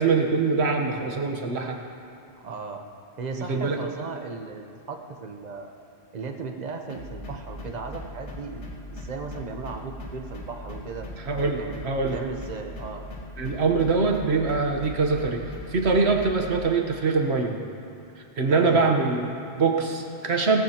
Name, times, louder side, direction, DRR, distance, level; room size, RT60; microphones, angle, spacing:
voice 1, 0.0-1.8 3.4-3.9 11.2-12.2 13.4-15.4 15.7-17.6 18.2-20.6, right 4 dB, 65° right, 3 dB, 1.4 m, -23 dB
voice 2, 2.4-2.8 3.2-5.7 6.1-11.1 11.5-11.8 12.1-13.0 18.5-18.9, right 4 dB, 40° right, 4 dB, 1.0 m, -36 dB
sound 1, 6.9-16.6, left 1 dB, 80° left, 2.0 m, -39 dB
18.5 x 14.5 x 2.9 m, 2.6 s
omnidirectional pair, 1.2 m